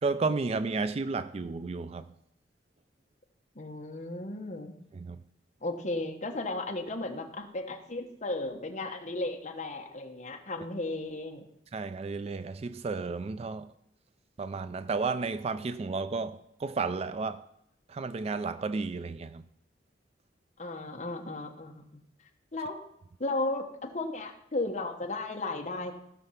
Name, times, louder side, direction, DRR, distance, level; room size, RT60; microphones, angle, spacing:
voice 1, 0.0-2.1 4.9-5.2 11.7-13.7 14.4-17.4 17.9-19.5, right 4 dB, 35° right, 0.4 m, -32 dB
voice 2, 3.6-4.7 5.6-11.5 20.6-21.8 22.5-22.8 23.2-26.0, left 2 dB, 40° left, 1.1 m, -35 dB
15.5 x 5.9 x 5.8 m
head